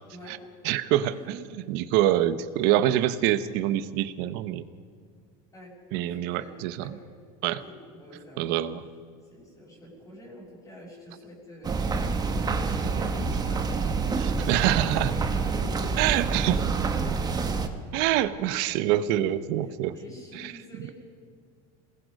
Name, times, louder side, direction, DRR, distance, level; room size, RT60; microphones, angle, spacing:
voice 1, 0.6-1.4 1.7-4.6 5.9-6.9 7.4-7.6 8.4-8.8 14.5-15.1 16.0-16.6 17.9-19.9 20.3-20.5, right 13 dB, 60° right, 13 dB, 1.1 m, -25 dB
voice 2, 5.5-7.1 7.4-8.5 9.3-14.8 15.3-17.5 19.5-20.9, left 1 dB, 15° left, -6 dB, 6.2 m, -47 dB
sound 1, 11.6-17.7, right 4 dB, 20° right, 1.5 m, -27 dB
28.0 x 20.5 x 5.4 m, 2.1 s
supercardioid pair, 135°, 19 cm